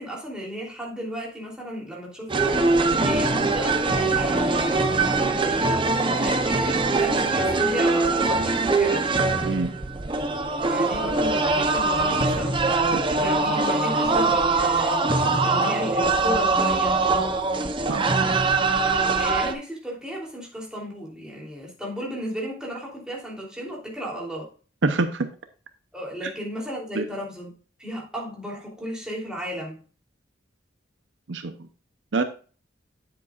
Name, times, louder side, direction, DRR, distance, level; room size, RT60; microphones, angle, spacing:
voice 1, 0.0-4.8 5.3-9.1 10.6-12.8 13.2-17.0 19.1-24.5 25.9-27.5 27.8-29.8, equal, 5° right, -4 dB, 3.2 m, -34 dB
sound 1, 2.3-19.5, right 3 dB, 25° right, 0.7 m, -22 dB
voice 2, 24.8-25.3 26.9-27.0 31.3-31.7 32.1-32.2, right 3 dB, 70° right, 9 dB, 0.7 m, -25 dB
9.5 x 7.8 x 2.4 m, 0.38 s
head